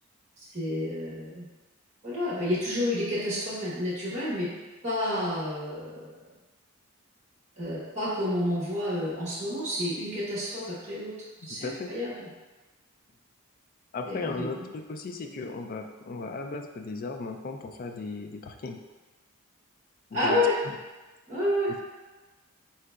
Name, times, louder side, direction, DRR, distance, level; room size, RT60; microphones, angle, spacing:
voice 1, 0.4-1.4 2.0-4.5 4.8-6.1 7.6-11.1 11.4-12.3 14.0-14.5 20.1-20.5 21.3-21.8, left 1 dB, 30° right, -8 dB, 1.2 m, -29 dB
voice 2, 13.9-18.8 20.1-20.8, left 3 dB, 40° left, 4 dB, 0.3 m, -36 dB
4.4 x 3.8 x 2.3 m, 1.2 s
head